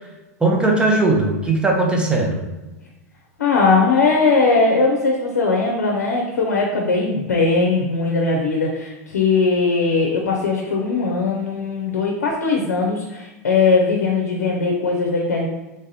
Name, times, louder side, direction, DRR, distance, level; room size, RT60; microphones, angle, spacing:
voice 1, 0.4-2.4, right 2 dB, 10° right, -1 dB, 0.9 m, -18 dB
voice 2, 3.4-15.5, left 4 dB, 85° left, 0 dB, 0.6 m, -19 dB
3.4 x 2.6 x 4.0 m, 1.0 s
hypercardioid pair, 100°, 9 cm